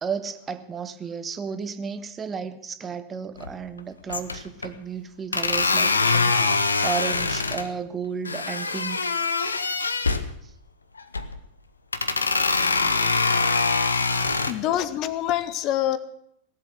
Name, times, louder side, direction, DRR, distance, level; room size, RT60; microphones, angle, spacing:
voice 1, 0.0-9.1 10.4-10.5, right 6 dB, 20° right, 12 dB, 1.0 m, -33 dB
sound 1, 3.4-3.8 4.1-4.7 5.3-7.7 8.2-10.3 11.0-11.4 11.9-14.5, left 4 dB, 75° left, 0.9 m, -23 dB
voice 2, 14.5-16.0, left 12 dB, 40° left, 15 dB, 0.8 m, -25 dB
18.0 x 8.0 x 8.0 m, 0.73 s
figure-of-eight pair, 90°, 0 cm